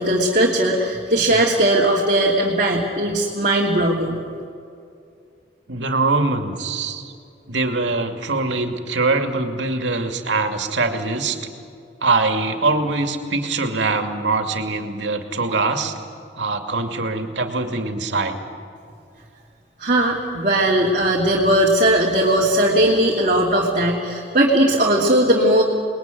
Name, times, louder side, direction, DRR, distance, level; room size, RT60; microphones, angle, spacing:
voice 1, 0.0-4.2 19.8-25.6, right 1 dB, 40° right, -3 dB, 2.9 m, -18 dB
voice 2, 5.7-7.1 7.5-11.4 12.0-16.0 16.3-18.4, right 3 dB, 80° right, 5 dB, 2.6 m, -23 dB
29.0 x 21.0 x 9.5 m, 2.5 s
head